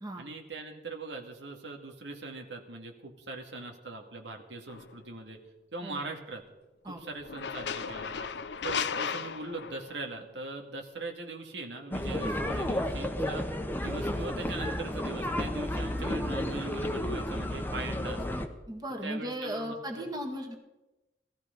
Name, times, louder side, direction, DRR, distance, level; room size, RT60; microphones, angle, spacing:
voice 1, 0.2-5.4 5.7-6.4 6.8-8.3 8.6-13.5 13.8-18.5 19.0-20.1, right 2 dB, 90° right, 2 dB, 2.2 m, -41 dB
sound 1, 4.7-4.9 7.2-10.1, left 6 dB, 70° left, 0.7 m, -35 dB
sound 2, 11.9-18.5, left 1 dB, 10° left, 1.1 m, -32 dB
voice 2, 18.7-20.6, equal, 25° right, 2 dB, 1.9 m, -36 dB
18.0 x 14.0 x 5.3 m, 1.0 s
head